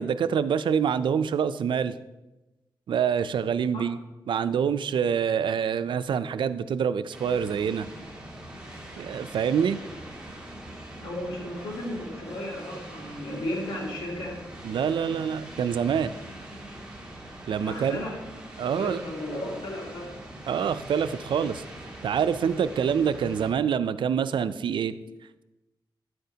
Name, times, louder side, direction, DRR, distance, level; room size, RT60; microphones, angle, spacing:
voice 1, 0.0-1.9 2.9-4.0 4.3-7.9 9.0-9.8 14.6-16.1 17.5-18.0 18.6-19.0 20.5-21.6 22.0-24.9, right 7 dB, 70° right, 12 dB, 0.4 m, -26 dB
sound 1, 7.1-23.5, right 1 dB, 10° right, 1.7 m, -43 dB
voice 2, 11.0-14.4 17.6-18.2 18.7-20.2, left 1 dB, 80° left, -2 dB, 2.4 m, -34 dB
9.6 x 7.7 x 2.8 m, 1.0 s
cardioid pair, 90°, 8 cm